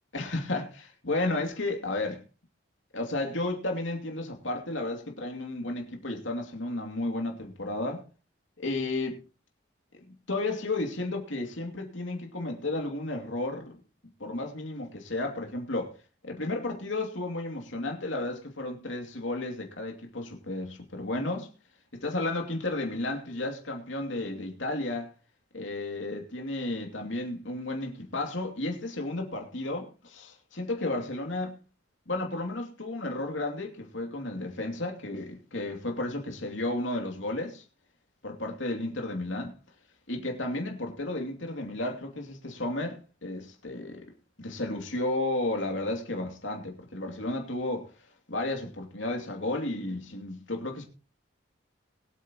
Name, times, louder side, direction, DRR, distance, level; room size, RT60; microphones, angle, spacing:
voice 1, 0.1-2.2 2.9-8.0 8.6-9.2 10.3-13.8 14.2-15.9 16.2-21.5 21.9-25.1 25.5-31.6 32.1-37.6 38.2-39.5 40.1-44.0 44.4-47.9 48.3-50.9, left 2 dB, 70° left, 2.7 m, -33 dB
22.5 x 8.4 x 3.0 m
head